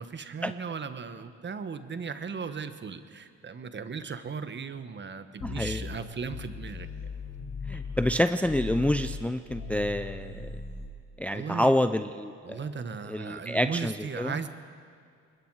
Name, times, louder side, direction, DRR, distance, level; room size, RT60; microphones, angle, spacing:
voice 1, 0.0-6.9 8.0-8.1 11.3-11.8 12.4-14.5, right 5 dB, 35° right, 10 dB, 1.3 m, -37 dB
sound 1, 5.4-8.1 8.4-10.9, left 4 dB, 75° left, 4.6 m, -38 dB
voice 2, 5.4-5.8 7.7-10.5 11.2-12.6 13.1-14.3, left 1 dB, 5° left, 10 dB, 0.5 m, -28 dB
26.5 x 21.5 x 4.8 m, 2.3 s
cardioid pair, 90°, 30 cm